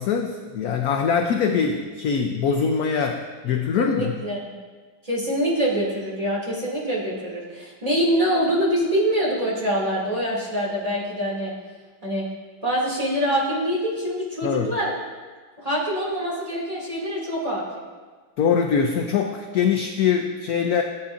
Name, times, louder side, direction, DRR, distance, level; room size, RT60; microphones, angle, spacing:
voice 1, 0.0-4.2 14.4-14.8 18.4-20.8, left 6 dB, 70° left, 4 dB, 0.9 m, -23 dB
voice 2, 3.8-4.4 5.0-11.5 12.0-12.2 12.6-14.9 15.6-17.6, equal, 20° right, -6 dB, 2.4 m, -24 dB
15.0 x 8.2 x 2.5 m, 1.4 s
omnidirectional pair, 2.1 m